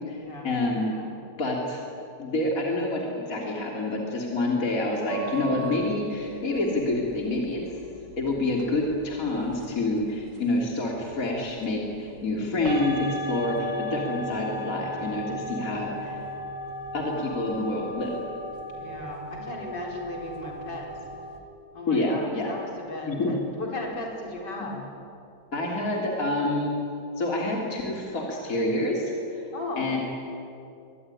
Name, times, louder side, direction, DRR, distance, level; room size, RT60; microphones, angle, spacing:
voice 1, 0.1-1.0 1.4-1.8 2.2-7.6 8.2-16.2 16.9-18.2 21.9-22.5 23.1-23.3 25.5-26.7 27.2-29.5 29.8-30.0, left 2 dB, 50° left, -1 dB, 3.7 m, -27 dB
sound 1, 5.1-21.4, right 1 dB, 80° right, 3.1 m, -37 dB
voice 2, 18.7-20.9 21.7-24.8 29.5-30.0, left 1 dB, 75° left, 0 dB, 5.3 m, -36 dB
24.0 x 23.0 x 9.9 m, 2.6 s
omnidirectional pair, 1.9 m